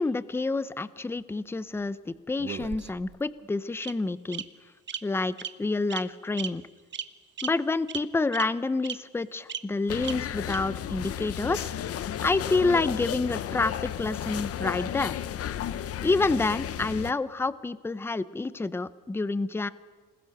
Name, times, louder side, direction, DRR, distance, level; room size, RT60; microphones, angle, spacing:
voice 1, 0.0-4.4 5.0-6.6 7.4-11.7 12.2-15.2 16.0-19.7, left 3 dB, 5° left, 16 dB, 0.5 m, -28 dB
Bird vocalization bird call bird song, 2.4-3.2 3.8-3.9 4.3-4.4 4.9-5.0 5.4-5.5 5.9-6.0 6.4-6.5 6.9-7.1 7.4-7.5 7.9-8.0 8.3-8.4 8.8-8.9 9.5-9.6 10.0-10.1 10.5-10.6, right 8 dB, 35° right, 1.0 m, -34 dB
sound 1, 9.9-17.1, left 10 dB, 45° left, 0.8 m, -33 dB
27.0 x 20.5 x 5.8 m, 1.4 s
cardioid pair, 140°, 33 cm